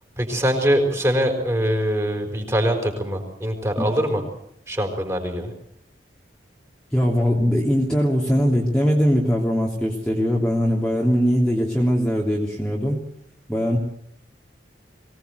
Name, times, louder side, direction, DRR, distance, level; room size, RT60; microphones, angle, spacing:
voice 1, 0.2-4.2 4.7-5.5, equal, 15° right, 4 dB, 5.1 m, -23 dB
voice 2, 6.9-13.0 13.5-13.8, equal, 5° left, -3 dB, 3.1 m, -21 dB
24.0 x 18.5 x 8.1 m, 0.70 s
head